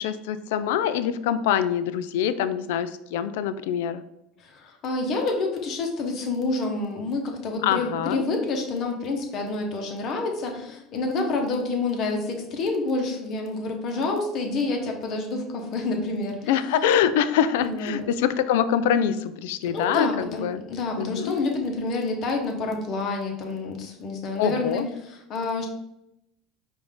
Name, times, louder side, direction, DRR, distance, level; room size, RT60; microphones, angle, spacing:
voice 1, 0.0-4.0 7.6-8.2 16.5-20.6 21.0-21.3 24.4-24.9, left 9 dB, 85° left, 12 dB, 0.3 m, -24 dB
voice 2, 4.4-16.5 16.8-16.9 17.6-18.3 19.7-25.7, left 3 dB, 50° left, 2 dB, 1.0 m, -28 dB
4.8 x 2.6 x 3.6 m, 0.83 s
supercardioid pair, 100°, 0 cm